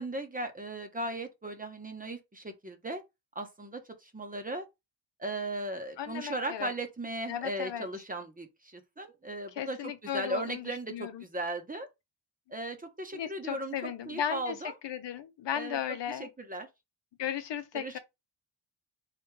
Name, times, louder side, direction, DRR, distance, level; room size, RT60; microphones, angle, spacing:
voice 1, 0.0-3.0 3.3-4.7 5.2-11.9 12.5-14.7 15.5-16.7 17.7-18.0, right 1 dB, 20° right, 0.9 m, -37 dB
voice 2, 6.0-6.7 7.3-7.9 9.6-11.2 13.1-14.5 14.8-16.3 17.2-18.0, left 9 dB, 70° left, 0.8 m, -36 dB
3.3 x 3.0 x 4.6 m
cardioid pair, 95°, 44 cm